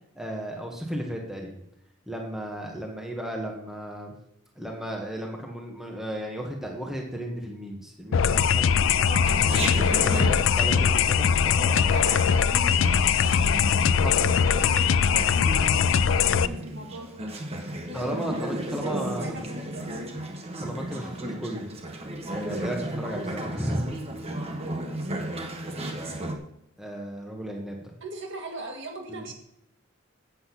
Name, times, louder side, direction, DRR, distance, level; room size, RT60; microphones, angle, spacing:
voice 1, 0.1-1.6 2.1-4.1 4.6-9.1 10.0-11.8 12.1-12.2 14.0-14.3 17.9-19.3 20.6-21.7 22.3-23.9 26.8-27.9 29.1-29.2, equal, ahead, 0 dB, 1.4 m, -34 dB
sound 1, 8.1-16.5, left 7 dB, 65° left, 0.4 m, -21 dB
voice 2, 9.0-9.6 11.6-13.0 14.1-17.2 17.8-18.3 18.8-20.2 28.0-29.3, right 1 dB, 60° right, 2 dB, 2.1 m, -38 dB
Chatter, 9.2-26.4, right 1 dB, 30° right, 1.1 m, -34 dB
8.1 x 7.6 x 5.9 m, 0.79 s
head